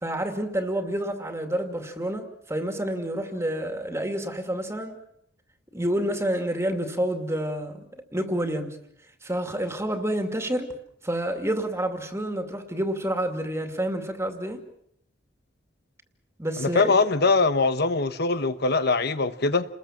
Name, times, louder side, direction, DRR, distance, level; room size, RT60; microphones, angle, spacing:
voice 1, 0.0-5.0 5.7-8.8 9.2-10.7 11.0-14.6 16.4-16.9, right 1 dB, 15° right, 2.5 m, -28 dB
voice 2, 16.6-19.6, left 3 dB, 55° left, 1.3 m, -22 dB
30.0 x 21.0 x 7.4 m
head